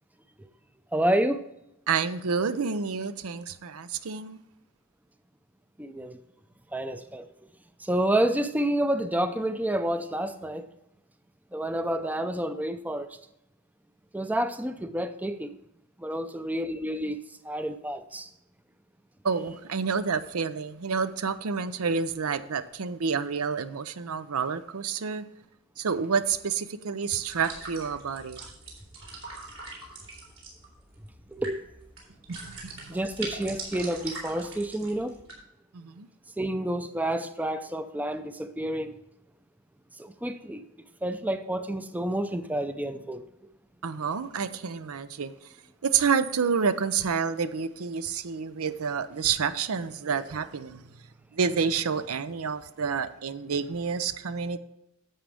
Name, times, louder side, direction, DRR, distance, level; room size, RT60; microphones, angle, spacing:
voice 1, 0.9-1.4 5.8-6.2 6.7-7.3 7.8-10.7 11.5-13.1 14.1-15.5 16.0-18.3 31.3-31.6 32.9-35.1 36.4-39.0 40.0-40.6 41.0-43.2, right 1 dB, 5° right, 0.5 m, -29 dB
voice 2, 1.9-4.4 19.2-25.3 25.8-28.5 32.3-32.8 35.7-36.1 43.8-45.3 45.8-50.8 51.3-54.6, right 6 dB, 85° right, 0.6 m, -29 dB
sound 1, 27.3-35.3, right 3 dB, 65° right, 3.4 m, -42 dB
11.0 x 7.4 x 3.5 m
head